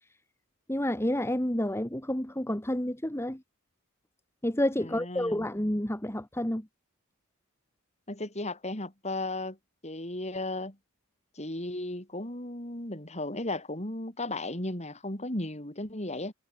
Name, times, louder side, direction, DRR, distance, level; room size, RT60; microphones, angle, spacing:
voice 1, 0.7-3.4 4.4-6.7, left 1 dB, 10° left, 1.8 m, -29 dB
voice 2, 4.8-5.4 8.1-9.6 9.8-10.8 11.3-16.3, left 2 dB, 30° left, 5.1 m, -35 dB
head